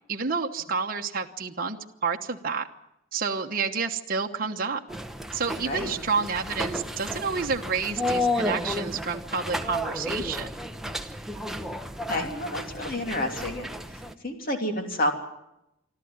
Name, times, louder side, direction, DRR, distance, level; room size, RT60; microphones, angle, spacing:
voice 1, 0.1-1.8 2.0-2.7 3.1-4.8 5.3-10.5, right 5 dB, 45° right, 2 dB, 1.1 m, -29 dB
sound 1, 4.9-14.1, left 1 dB, ahead, 0.9 m, -32 dB
voice 2, 5.6-6.0 12.1-13.7 14.2-15.1, left 1 dB, 45° left, 3 dB, 3.1 m, -29 dB
27.5 x 12.5 x 9.5 m, 0.87 s
head